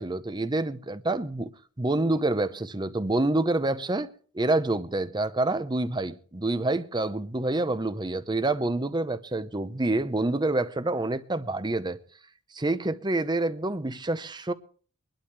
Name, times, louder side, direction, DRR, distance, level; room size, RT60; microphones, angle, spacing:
voice 1, 0.0-1.5 1.8-4.1 4.3-12.0 12.5-14.5, right 2 dB, 20° right, 0.7 m, -27 dB
23.0 x 11.5 x 3.3 m
head